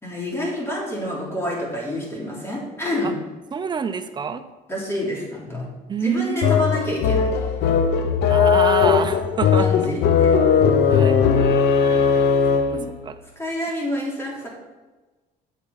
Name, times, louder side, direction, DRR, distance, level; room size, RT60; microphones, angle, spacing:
voice 1, 0.0-3.2 4.7-5.7 6.0-7.5 9.5-10.3 12.7-12.9 13.3-14.5, left 1 dB, 15° left, -4 dB, 3.2 m, -28 dB
voice 2, 3.5-4.4 5.9-6.6 8.3-9.7 10.9-11.2 12.7-13.1, right 6 dB, 25° right, 9 dB, 0.6 m, -26 dB
sound 1, 6.4-12.9, left 6 dB, 80° left, 0.8 m, -18 dB
8.2 x 8.2 x 4.2 m, 1.2 s
cardioid pair, 110°, 17 cm